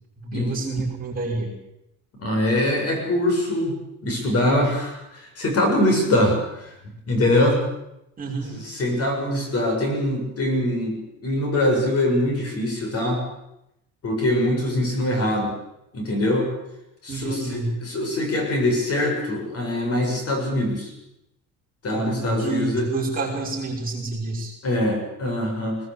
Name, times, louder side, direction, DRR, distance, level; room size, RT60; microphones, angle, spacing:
voice 1, 0.2-1.5 8.2-8.6 17.1-17.8 21.9-24.5, right 3 dB, 25° right, -3 dB, 6.3 m, -28 dB
voice 2, 2.2-3.7 4.0-6.7 7.1-7.6 8.5-13.2 14.0-15.5 15.9-16.5 17.0-20.9 21.8-22.9 24.6-25.8, left 1 dB, 45° left, 2 dB, 7.1 m, -23 dB
21.5 x 19.5 x 8.5 m, 0.84 s
cardioid pair, 175°, 33 cm